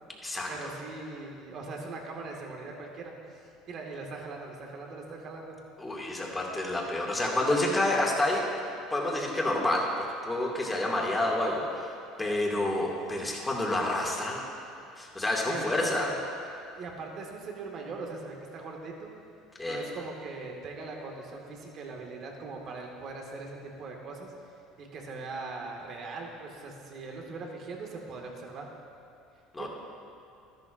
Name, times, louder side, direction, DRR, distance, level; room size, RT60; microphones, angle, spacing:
voice 1, 0.5-3.1 3.7-5.6 15.5-16.1 16.8-19.1 19.6-24.3 24.8-28.7 29.6-29.7, right 3 dB, 50° right, 0 dB, 1.9 m, -40 dB
voice 2, 5.8-8.4 8.9-9.9 10.2-11.6 12.2-14.4 15.0-16.1 19.6-19.8 29.5-29.7, left 1 dB, 15° left, -2 dB, 2.3 m, -28 dB
13.0 x 11.5 x 2.6 m, 2.8 s
hypercardioid pair, 80°, 0 cm